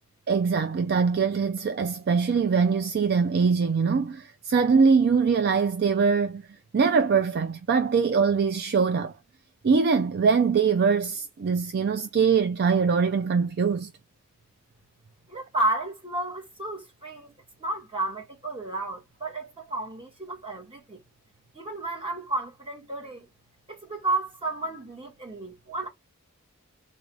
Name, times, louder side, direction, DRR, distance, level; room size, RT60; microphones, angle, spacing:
voice 1, 0.3-6.4 6.7-9.1 9.6-13.9, right 5 dB, 50° right, 0.4 m, -23 dB
voice 2, 15.3-17.3 17.6-21.0 21.5-23.3 23.7-25.9, right 2 dB, 25° right, 1.9 m, -32 dB
4.0 x 2.5 x 4.7 m
head